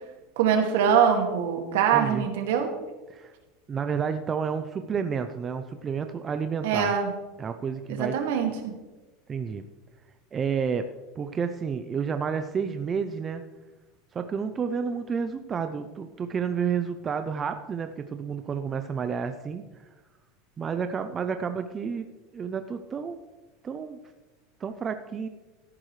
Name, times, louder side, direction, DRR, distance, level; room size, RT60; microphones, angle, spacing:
voice 1, 0.4-2.7 6.6-7.1 7.9-8.7, right 7 dB, 70° right, 3 dB, 2.0 m, -23 dB
voice 2, 1.9-2.3 3.1-3.3 3.7-6.9 7.4-8.2 9.3-9.6 10.3-10.9 11.2-13.4 14.1-19.6 20.6-22.1 22.3-23.2 23.6-24.0 24.6-25.3, right 6 dB, 15° right, 8 dB, 0.4 m, -30 dB
13.5 x 11.5 x 3.2 m, 1.2 s
supercardioid pair, 175°, 0 cm